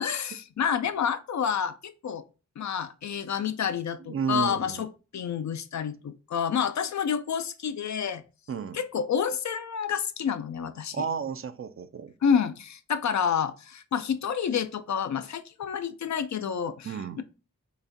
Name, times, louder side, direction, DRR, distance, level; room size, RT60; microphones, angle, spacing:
voice 1, 0.0-2.2 2.6-8.2 8.7-11.0 12.2-17.2, left 7 dB, 60° left, 0.4 m, -29 dB
voice 2, 4.1-4.8 8.5-8.8 10.9-12.1 16.8-17.2, right 6 dB, 45° right, 0.4 m, -32 dB
3.9 x 2.4 x 2.6 m
cardioid pair, 45°, 32 cm